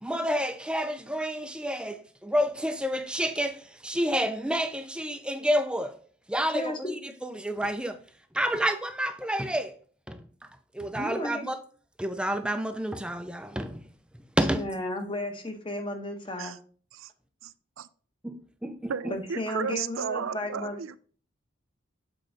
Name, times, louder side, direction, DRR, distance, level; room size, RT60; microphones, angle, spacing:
voice 1, 0.0-6.0 6.3-8.0 8.3-9.8 10.1-10.2 10.7-11.6 12.0-13.8 14.4-14.7 18.2-19.1, equal, 5° right, 0.5 m, -29 dB
voice 2, 6.5-6.9 11.0-11.4 14.5-16.6 19.1-20.8, left 1 dB, 25° left, 1.1 m, -33 dB
voice 3, 17.4-17.9 18.9-21.0, right 7 dB, 85° right, 0.5 m, -34 dB
7.5 x 4.6 x 3.9 m
head